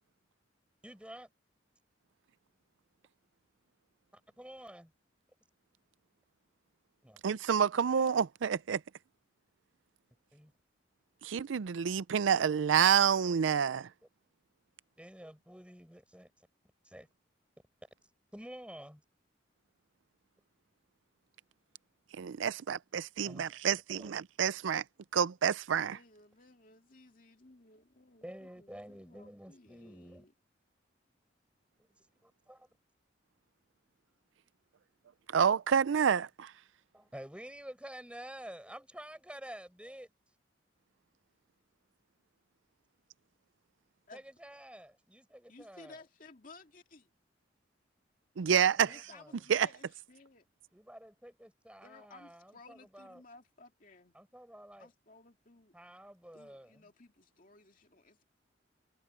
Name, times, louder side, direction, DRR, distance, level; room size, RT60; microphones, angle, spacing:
voice 1, 0.8-1.3 4.1-4.9 7.0-7.2 10.3-10.5 15.0-16.5 16.8-17.1 18.3-19.0 23.2-23.5 24.0-24.1 28.2-30.2 31.8-32.7 36.9-40.1 44.1-46.0 48.8-49.4 50.7-53.2 54.1-54.9 55.7-56.9, equal, 5° right, 6.2 m, -50 dB
voice 2, 7.2-8.8 11.2-13.9 22.2-24.8 25.1-26.0 35.3-36.5 48.4-48.9 49.5-49.7, right 7 dB, 85° right, 0.4 m, -28 dB
voice 3, 25.9-30.3 44.1-44.3 45.5-47.1 48.8-50.4 51.8-54.1 54.8-55.8 56.3-58.2, left 3 dB, 45° left, 2.5 m, -57 dB
head